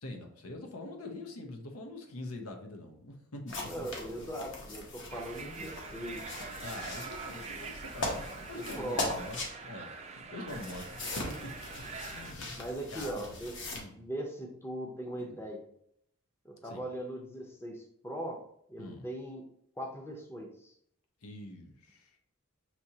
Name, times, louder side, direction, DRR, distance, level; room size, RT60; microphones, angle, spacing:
voice 1, 0.0-3.9 6.6-9.4 9.6-11.6 11.9-12.6 12.9-13.3 13.7-14.0 15.2-15.4 16.6-16.8 18.8-19.1 21.2-22.2, left 2 dB, 90° left, 3 dB, 0.8 m, -44 dB
sound 1, 3.5-9.5 10.5-13.8, left 2 dB, 55° left, 0.9 m, -40 dB
voice 2, 3.6-6.5 8.5-9.1 12.6-15.7 16.4-18.4 18.7-19.4 19.8-20.7, right 1 dB, 10° left, 1 dB, 0.6 m, -40 dB
sound 2, 5.1-12.3, right 4 dB, 30° right, 0.4 m, -44 dB
6.0 x 2.8 x 2.7 m, 0.71 s
head